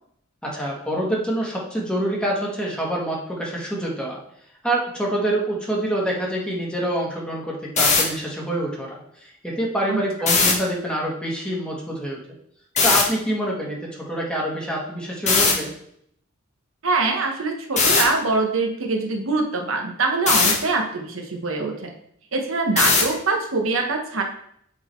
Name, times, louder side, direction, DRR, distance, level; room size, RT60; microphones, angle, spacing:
voice 1, 0.4-4.2 4.6-12.2 12.8-15.7, right 1 dB, 5° left, -3 dB, 1.6 m, -26 dB
sound 1, 7.6-8.0 10.2-10.5 12.8-13.0 15.3-15.5 17.8-18.0 20.3-20.5 22.8-23.1, left 4 dB, 35° left, 1.4 m, -17 dB
voice 2, 16.8-21.9 22.3-24.2, right 3 dB, 70° right, 3 dB, 1.1 m, -23 dB
7.9 x 3.9 x 4.5 m, 0.69 s
head